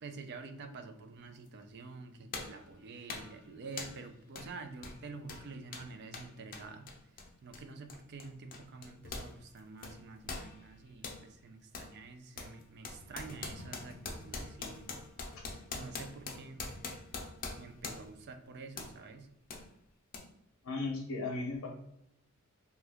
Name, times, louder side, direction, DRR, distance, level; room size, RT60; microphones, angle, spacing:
voice 1, 0.0-6.9 7.4-14.9 15.7-16.6 17.6-19.3, right 4 dB, 50° right, 7 dB, 0.4 m, -48 dB
sound 1, 1.5-1.6 2.3-2.6 3.1-3.4 3.8-4.0 4.3-4.5 4.8-9.3 9.6-11.2 11.7-11.9 12.4-18.2 18.8-19.0 19.5-19.6 20.1-20.2, left 4 dB, 40° left, 0.5 m, -43 dB
voice 2, 20.6-21.7, left 3 dB, 85° left, 0 dB, 0.6 m, -36 dB
2.8 x 2.2 x 3.4 m, 0.81 s
head